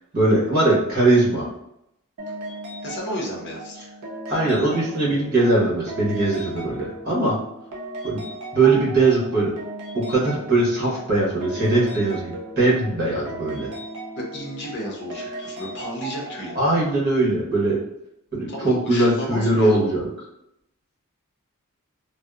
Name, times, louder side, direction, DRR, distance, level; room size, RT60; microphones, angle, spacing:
voice 1, 0.1-1.5 4.3-7.3 8.0-8.2 8.5-9.5 9.9-13.7 16.5-17.8 18.3-20.1, right 2 dB, 45° right, -6 dB, 1.1 m, -20 dB
sound 1, 2.2-16.9, right 1 dB, 70° right, 0.7 m, -36 dB
voice 2, 2.8-3.7 14.2-16.6 18.5-20.0, equal, 50° left, -2 dB, 0.6 m, -32 dB
2.6 x 2.0 x 2.3 m, 0.80 s
head